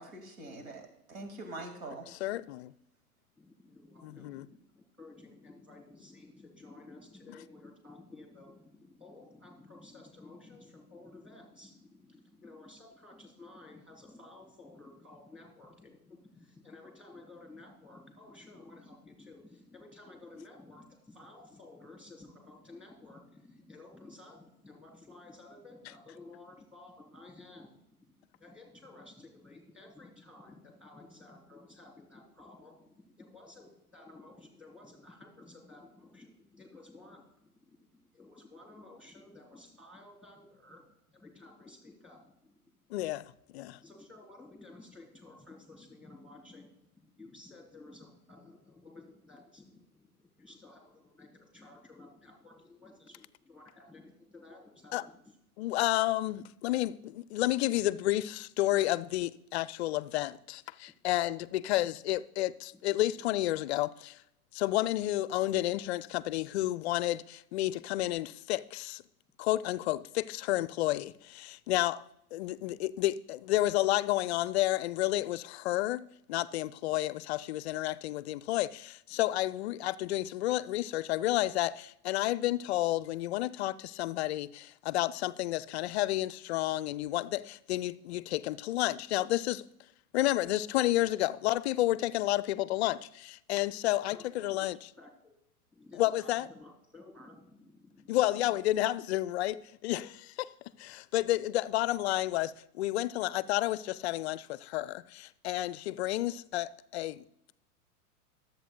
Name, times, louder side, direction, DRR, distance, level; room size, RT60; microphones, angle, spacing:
voice 1, 0.0-2.1, right 2 dB, 60° right, 2.3 m, -44 dB
voice 2, 2.1-2.7 4.0-4.5 42.9-43.2 43.5-43.8 54.9-55.0 55.6-64.2 64.5-69.0 69.4-72.0 72.3-89.6 90.1-94.8 96.0-96.5 98.1-100.5 100.8-107.2, left 16 dB, 45° left, 0.5 m, -31 dB
voice 3, 3.4-42.7 43.8-55.4 62.7-62.8 79.1-79.2 82.6-82.7 94.1-94.7 95.0-95.1 95.7-98.2, left 2 dB, ahead, 3.3 m, -54 dB
23.5 x 8.0 x 2.2 m
figure-of-eight pair, 100°, 45 cm